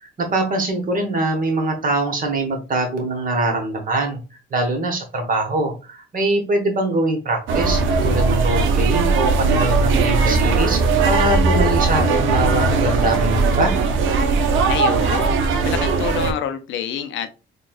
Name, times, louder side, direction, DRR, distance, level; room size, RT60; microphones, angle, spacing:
voice 1, 0.0-4.2 4.5-10.8 11.0-13.7, right 2 dB, 45° right, 3 dB, 1.2 m, -23 dB
sound 1, 7.5-16.3, right 4 dB, 80° right, 0.6 m, -18 dB
voice 2, 14.7-17.3, left 8 dB, 75° left, 9 dB, 0.5 m, -27 dB
4.1 x 2.3 x 2.4 m, 0.31 s
cardioid pair, 90°, 20 cm